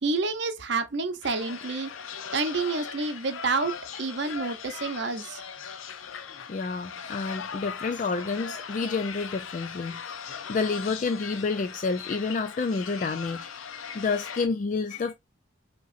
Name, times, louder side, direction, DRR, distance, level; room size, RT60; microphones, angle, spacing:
voice 1, 0.0-1.9 2.3-3.7 4.0-5.4, right 3 dB, 60° right, 0.7 m, -28 dB
sound 1, 1.2-14.5, left 7 dB, 85° left, 0.6 m, -39 dB
voice 2, 6.5-15.1, left 4 dB, 40° left, 0.3 m, -29 dB
5.4 x 2.9 x 2.5 m
head